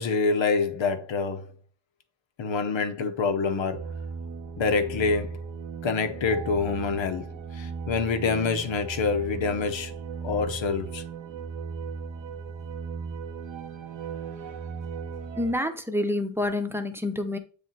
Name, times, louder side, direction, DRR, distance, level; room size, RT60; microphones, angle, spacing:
voice 1, 0.0-1.4 2.4-3.9 4.6-5.3 5.8-7.3 7.5-9.9 10.2-11.0, left 4 dB, 80° left, 0.9 m, -26 dB
sound 1, 3.7-15.5, right 5 dB, 80° right, 1.1 m, -37 dB
voice 2, 15.4-17.4, left 1 dB, 5° right, 0.9 m, -28 dB
7.6 x 3.4 x 4.0 m
cardioid pair, 65°, 45 cm